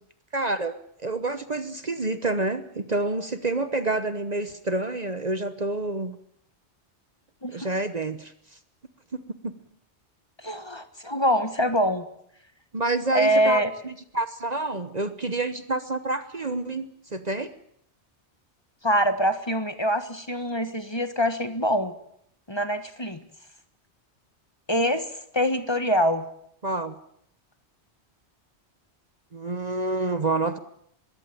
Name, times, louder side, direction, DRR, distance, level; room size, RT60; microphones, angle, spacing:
voice 1, 0.3-0.7 1.0-6.1 7.5-8.3 9.4-9.5 12.7-17.5 26.6-26.9 29.3-30.6, right 2 dB, 40° right, 11 dB, 1.1 m, -28 dB
voice 2, 7.4-7.7 10.4-12.1 13.1-13.7 18.8-21.9 22.5-23.2 24.7-26.2, equal, 25° left, 10 dB, 1.5 m, -24 dB
22.0 x 16.5 x 9.0 m, 0.70 s
omnidirectional pair, 1.2 m